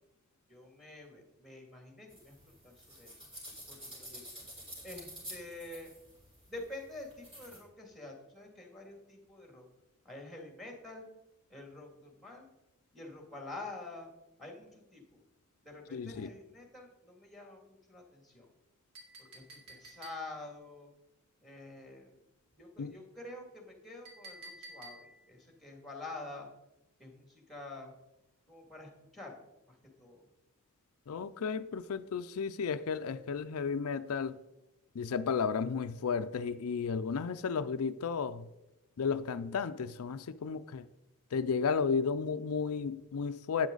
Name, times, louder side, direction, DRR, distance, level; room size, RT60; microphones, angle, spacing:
voice 1, 0.5-3.1 3.7-4.4 4.8-5.9 6.5-9.7 10.0-11.1 11.5-12.5 12.9-14.1 14.4-15.2 15.6-18.5 19.2-20.9 21.4-22.2 22.5-26.5 27.0-27.9 28.5-29.4 29.7-30.3, left 2 dB, ahead, 2.2 m, -48 dB
sound 1, 2.1-7.6, equal, 25° right, 4.7 m, -49 dB
voice 2, 15.9-16.3 22.8-22.9 31.1-34.4 34.9-38.5 39.0-40.8 41.3-43.7, left 5 dB, 75° left, 0.4 m, -33 dB
Chink clink, 18.9-20.5 24.1-25.3, right 1 dB, 85° right, 3.3 m, -51 dB
12.0 x 9.0 x 3.9 m
head